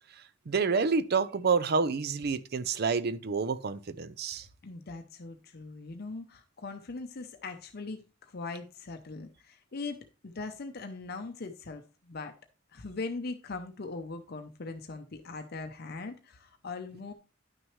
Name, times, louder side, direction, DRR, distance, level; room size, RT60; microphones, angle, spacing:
voice 1, 0.5-4.5, right 5 dB, 55° right, 0.5 m, -28 dB
voice 2, 4.6-12.3 12.7-17.1, left 3 dB, 55° left, 0.7 m, -40 dB
10.5 x 6.1 x 3.2 m
head